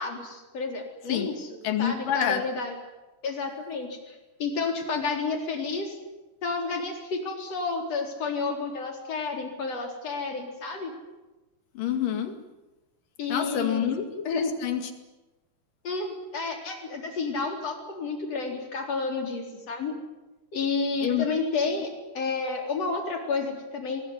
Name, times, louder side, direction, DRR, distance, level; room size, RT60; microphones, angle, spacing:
voice 1, 0.0-1.5 1.8-2.7 3.2-6.0 6.4-10.9 13.2-13.9 14.2-14.5 15.8-19.9 20.5-21.9 22.1-24.0, left 4 dB, 50° left, 3 dB, 5.0 m, -30 dB
voice 2, 1.6-2.4 11.8-12.4 13.3-14.9 21.0-21.3 21.6-21.7, left 9 dB, 75° left, 7 dB, 3.8 m, -27 dB
23.5 x 21.0 x 9.7 m, 1.1 s
omnidirectional pair, 3.9 m